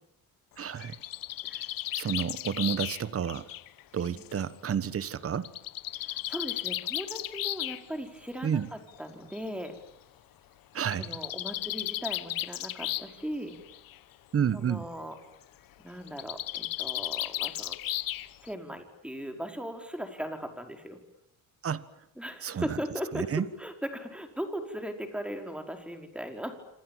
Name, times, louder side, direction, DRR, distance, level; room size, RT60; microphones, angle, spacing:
Bird, 0.6-4.4 5.4-7.8 8.9-9.0 9.3-9.4 9.7-9.8 10.8-13.2 13.5-14.0 16.1-18.5, left 14 dB, 80° left, 1.2 m, -35 dB
voice 1, 0.6-1.0 1.9-3.5 3.9-5.5 8.4-8.7 10.7-11.1 14.3-14.9 21.6-21.8 22.4-22.8 23.1-23.5, right 8 dB, 40° right, 15 dB, 1.4 m, -30 dB
voice 2, 5.9-9.7 11.0-13.6 14.5-15.2 15.8-17.8 18.4-21.0 22.2-26.6, equal, 5° right, 5 dB, 5.1 m, -38 dB
27.5 x 27.0 x 7.5 m, 0.77 s
cardioid pair, 115°, 33 cm